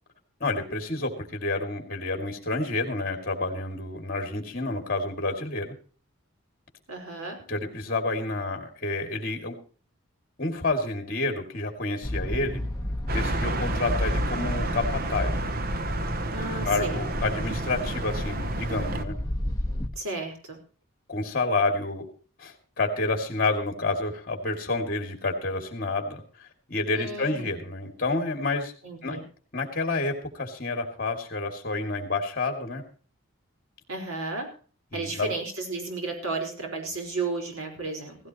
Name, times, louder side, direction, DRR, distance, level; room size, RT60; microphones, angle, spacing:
voice 1, 0.4-5.7 7.5-9.6 10.4-12.6 13.1-15.3 16.6-19.2 21.1-22.0 22.4-28.7 29.0-29.2 29.5-32.8 34.9-35.3, left 2 dB, 40° left, 4 dB, 2.5 m, -29 dB
voice 2, 6.9-7.4 16.3-16.9 19.9-20.6 26.9-27.6 28.8-29.2 33.9-34.5 34.9-38.2, right 3 dB, 80° right, 3 dB, 4.8 m, -33 dB
sound 1, 12.0-19.9, left 1 dB, 15° left, 1.3 m, -31 dB
sound 2, 13.1-19.0, right 2 dB, 45° right, 1.0 m, -31 dB
16.5 x 16.0 x 3.1 m, 0.40 s
head